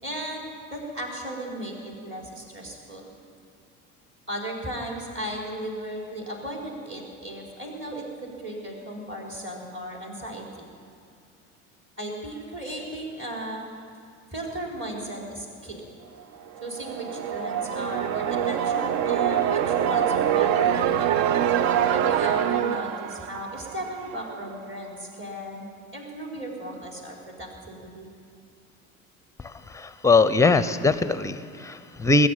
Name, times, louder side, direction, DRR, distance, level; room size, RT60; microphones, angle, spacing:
voice 1, 0.0-3.1 4.3-10.7 12.0-13.7 14.3-15.8 16.6-21.1 21.9-28.1, right 1 dB, 30° right, -1 dB, 4.4 m, -36 dB
sound 1, 16.6-24.3, right 9 dB, 50° right, 0.7 m, -25 dB
voice 2, 29.4-32.3, left 3 dB, 5° left, 13 dB, 0.7 m, -21 dB
19.5 x 9.0 x 7.4 m, 2.5 s
figure-of-eight pair, 65°, 43 cm